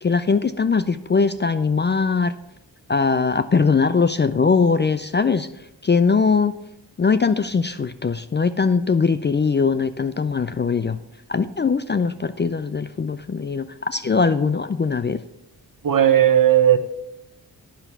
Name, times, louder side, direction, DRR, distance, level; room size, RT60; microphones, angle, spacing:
voice 1, 0.0-2.3 2.9-5.5 5.8-6.5 7.0-11.0 11.3-15.2, left 5 dB, 25° left, 13 dB, 0.4 m, -21 dB
voice 2, 15.8-16.8, right 10 dB, 50° right, 9 dB, 1.1 m, -15 dB
9.0 x 5.8 x 6.9 m, 0.85 s
supercardioid pair, 45°, 43 cm